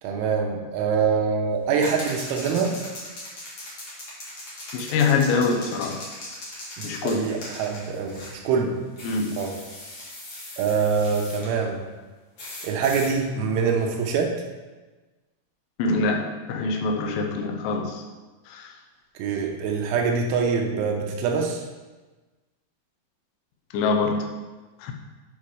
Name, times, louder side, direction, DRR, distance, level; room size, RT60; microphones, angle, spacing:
voice 1, 0.0-2.8 6.8-8.2 8.4-8.8 9.4-9.5 10.6-11.8 12.6-14.3 19.2-21.6, right 5 dB, 80° right, 2 dB, 3.1 m, -24 dB
sound 1, 1.8-8.4 9.0-11.5 12.4-13.1, left 1 dB, 65° left, 1.3 m, -39 dB
voice 2, 4.7-6.0 6.8-7.3 9.0-9.4 15.8-18.0 18.5-18.7 23.7-24.3 24.8-24.9, left 4 dB, 85° left, 3 dB, 3.4 m, -24 dB
8.7 x 4.7 x 4.7 m, 1.2 s
omnidirectional pair, 5.7 m